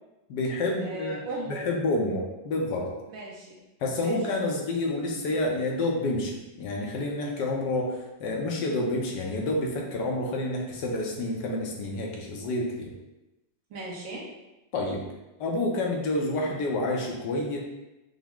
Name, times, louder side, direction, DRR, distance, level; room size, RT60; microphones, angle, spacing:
voice 1, 0.3-1.2 1.5-2.9 3.8-12.9 14.7-15.0 15.4-17.6, left 2 dB, 75° left, -1 dB, 1.3 m, -29 dB
voice 2, 0.8-1.7 3.1-3.6 4.0-4.3 13.7-14.3, right 2 dB, 80° right, -5 dB, 1.7 m, -37 dB
5.7 x 2.1 x 3.6 m, 1.0 s
omnidirectional pair, 2.0 m